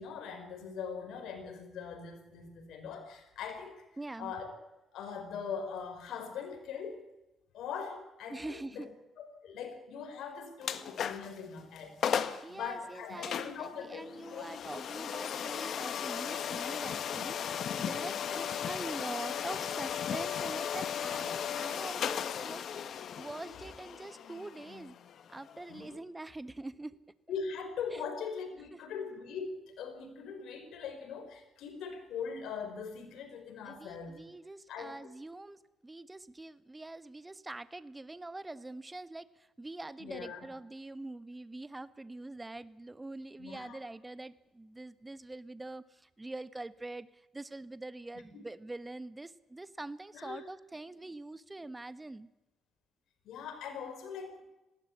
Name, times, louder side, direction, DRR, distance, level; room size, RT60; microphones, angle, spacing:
voice 1, 0.0-3.8 4.2-4.5 4.9-7.0 7.5-8.9 9.2-14.5 18.1-18.4 25.7-26.0 27.3-34.2 34.7-34.9 40.0-40.4 43.4-43.8 50.1-50.4 53.2-54.4, left 6 dB, 80° left, 7 dB, 4.9 m, -41 dB
voice 2, 4.0-4.3 8.3-8.9 12.4-24.9 25.3-27.0 27.9-28.0 33.7-47.1 47.3-52.3, right 2 dB, 15° right, 14 dB, 1.2 m, -44 dB
sound 1, 10.6-11.4 11.8-11.9 12.0-12.5 13.2-26.0, left 8 dB, 65° left, 1.4 m, -36 dB
19.5 x 17.0 x 8.6 m, 1.0 s
cardioid pair, 90°, 0 cm